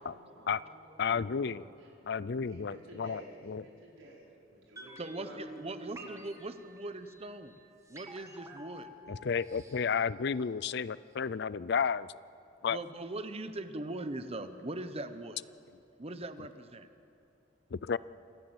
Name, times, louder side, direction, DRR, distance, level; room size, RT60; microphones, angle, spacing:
voice 1, 0.0-1.9 2.5-5.4 6.0-6.3, right 1 dB, 85° right, -3 dB, 4.9 m, -53 dB
voice 2, 1.0-1.6 2.1-3.2 3.5-3.6 9.1-12.1 12.6-12.8 17.7-18.0, left 6 dB, 60° left, 18 dB, 0.5 m, -32 dB
sound 1, 4.8-10.8 11.1-11.2, right 1 dB, 15° right, 1.7 m, -50 dB
voice 3, 5.0-7.6 7.9-8.9 12.7-15.4 16.0-16.9, right 2 dB, 30° right, 10 dB, 1.0 m, -40 dB
27.5 x 14.5 x 8.0 m, 2.7 s
head